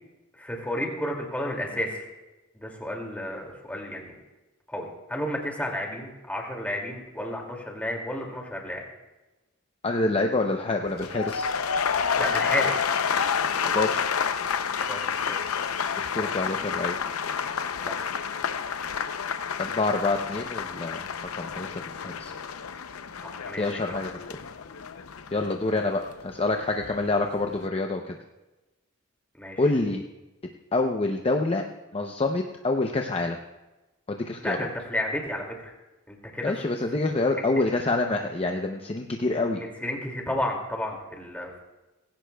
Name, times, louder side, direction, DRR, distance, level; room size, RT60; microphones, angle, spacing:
voice 1, 0.4-2.1 2.5-4.2 4.7-8.8 12.2-12.7 14.8-15.4 16.2-16.3 17.9-18.0 23.2-24.0 29.4-29.6 34.4-35.7 36.1-36.5 39.6-41.6, left 1 dB, 5° left, 0 dB, 2.4 m, -32 dB
voice 2, 9.8-11.5 13.6-14.0 16.0-17.0 19.6-22.3 23.6-24.4 25.3-28.2 29.6-30.0 30.7-31.6 31.9-33.4 34.1-34.7 36.4-39.6, left 2 dB, 30° left, 3 dB, 0.7 m, -27 dB
sound 1, 10.9-26.9 27.2-27.7, left 6 dB, 90° left, 0.6 m, -29 dB
18.5 x 16.5 x 2.3 m, 1.1 s
head